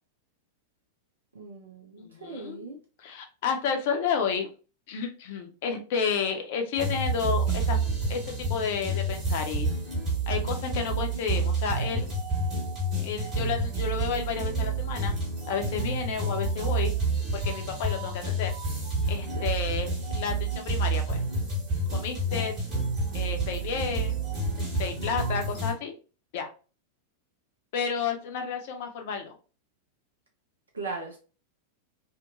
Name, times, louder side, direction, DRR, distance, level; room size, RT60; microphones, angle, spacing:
voice 1, 1.3-2.8 19.1-19.5 30.7-31.2, right 3 dB, 70° right, 1 dB, 0.5 m, -39 dB
voice 2, 2.0-2.7 3.0-4.5 4.9-7.8 8.1-9.7 10.3-12.1 13.0-15.2 15.5-16.9 17.3-18.5 19.1-21.2 21.9-22.5 23.1-24.2 24.8-25.9 26.3-26.5 27.7-29.4, left 6 dB, 50° left, 5 dB, 0.5 m, -31 dB
sound 1, 6.8-25.7, right 2 dB, 35° right, 1.4 m, -29 dB
2.8 x 2.1 x 2.4 m, 0.35 s
figure-of-eight pair, 90°, 0 cm